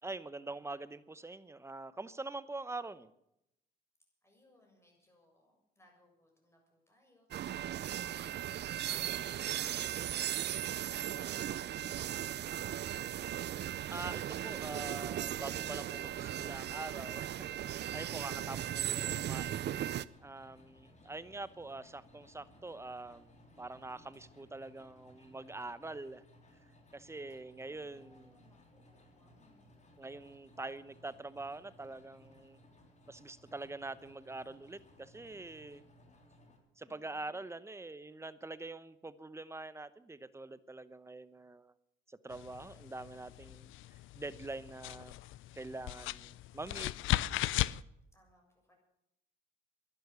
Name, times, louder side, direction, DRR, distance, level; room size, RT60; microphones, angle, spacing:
voice 1, 0.0-3.1 13.9-17.5 17.9-19.7 20.2-23.3 23.6-26.2 26.9-28.3 30.0-32.6 33.1-35.8 36.8-41.7 42.1-43.7 44.2-45.2 45.5-46.9, right 2 dB, 15° right, 15 dB, 0.9 m, -44 dB
voice 2, 4.2-13.2 27.5-29.8 36.8-37.5 48.1-48.7, left 1 dB, 15° left, 0 dB, 7.2 m, -67 dB
sound 1, 7.3-20.1, right 11 dB, 60° right, 0.6 m, -37 dB
sound 2, 17.8-36.6, left 1 dB, 35° left, 3.7 m, -62 dB
sound 3, 42.3-47.8, left 16 dB, 85° left, 0.5 m, -37 dB
12.0 x 11.5 x 9.4 m, 0.82 s
cardioid pair, 90°, 20 cm